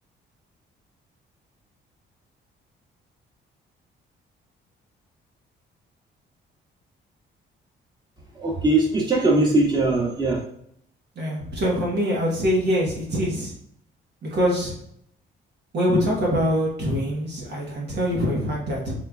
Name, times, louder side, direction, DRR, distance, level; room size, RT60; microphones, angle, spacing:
voice 1, 8.3-10.4, right 2 dB, 20° right, -3 dB, 1.5 m, -20 dB
voice 2, 11.2-13.5 14.2-14.7 15.7-18.9, equal, 60° right, -2 dB, 1.2 m, -24 dB
4.3 x 3.8 x 2.3 m, 0.69 s
cardioid pair, 90°, 20 cm